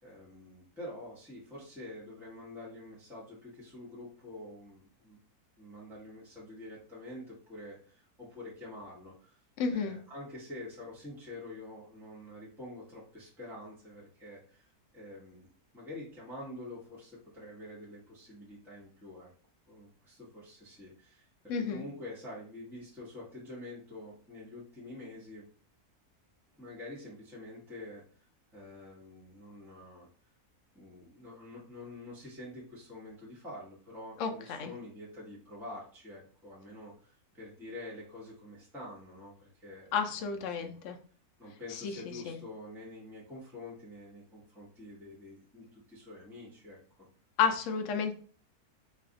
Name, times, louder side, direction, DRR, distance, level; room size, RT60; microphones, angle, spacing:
voice 1, 0.0-5.2 5.6-9.4 9.7-14.7 14.9-19.3 19.7-25.5 26.6-28.3 28.5-30.1 30.7-39.9 40.6-40.8 41.4-47.1, left 1 dB, ahead, -7 dB, 1.0 m, -47 dB
voice 2, 9.6-10.0 21.5-21.8 34.2-34.7 39.9-41.0 41.7-42.4 47.4-48.1, left 6 dB, 65° left, 4 dB, 0.8 m, -32 dB
3.3 x 2.3 x 3.8 m, 0.43 s
omnidirectional pair, 1.6 m